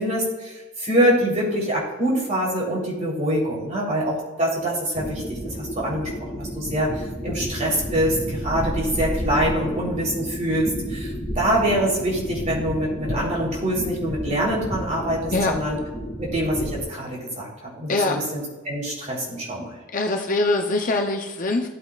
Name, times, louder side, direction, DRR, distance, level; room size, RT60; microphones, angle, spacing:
voice 1, 0.0-15.8 16.2-19.8, right 1 dB, 35° right, -4 dB, 3.6 m, -25 dB
sound 1, 4.9-16.8, equal, ahead, 1.8 m, -31 dB
voice 2, 17.9-18.2 19.9-21.7, left 2 dB, 40° left, 3 dB, 0.7 m, -23 dB
15.0 x 8.5 x 2.4 m, 1.2 s
head